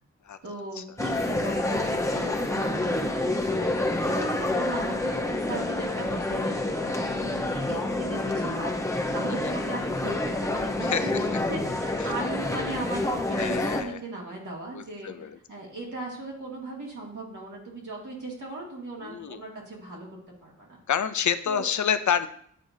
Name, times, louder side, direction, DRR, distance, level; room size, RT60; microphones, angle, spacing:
voice 1, 0.4-4.0 4.4-8.8 9.1-20.1 20.4-20.8 21.5-21.7, right 2 dB, 70° right, -3 dB, 2.1 m, -38 dB
sound 1, 1.0-13.8, left 2 dB, 10° left, 0.8 m, -28 dB
voice 2, 10.8-11.2 12.0-12.1 13.3-14.0 14.7-15.4 19.0-19.4 20.9-22.3, left 8 dB, 65° left, 11 dB, 0.5 m, -28 dB
9.1 x 4.8 x 2.7 m, 0.62 s
wide cardioid pair, 75°, 31 cm